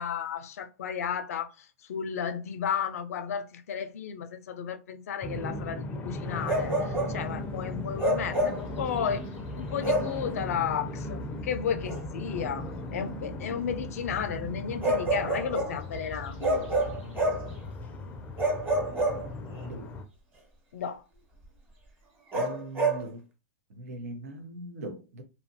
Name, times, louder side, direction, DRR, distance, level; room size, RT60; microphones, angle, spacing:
voice 1, 0.0-9.2 9.5-16.7 20.7-21.0, left 7 dB, 80° left, 0.4 m, -33 dB
sound 1, 5.2-20.0, left 1 dB, 20° left, 0.4 m, -37 dB
Bark, 6.4-7.2 8.0-8.7 9.8-10.2 11.8-12.0 14.8-15.8 16.4-17.5 18.4-19.6 22.3-23.0, right 1 dB, 25° right, 1.2 m, -28 dB
voice 2, 22.3-23.2 23.8-25.2, right 2 dB, 80° right, 0.8 m, -40 dB
2.7 x 2.3 x 2.7 m
hypercardioid pair, 125°, 8 cm